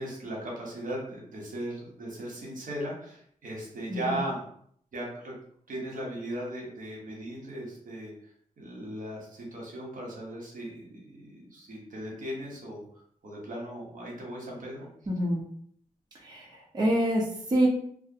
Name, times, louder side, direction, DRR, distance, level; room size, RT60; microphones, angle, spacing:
voice 1, 0.0-4.4 4.9-5.3 5.7-8.1 8.6-12.8 13.2-14.9, right 1 dB, 70° right, -3 dB, 0.9 m, -37 dB
voice 2, 3.9-4.2 15.1-15.4 16.2-17.7, right 1 dB, 30° right, -4 dB, 0.6 m, -26 dB
2.4 x 2.0 x 2.7 m, 0.63 s
wide cardioid pair, 90°, 14 cm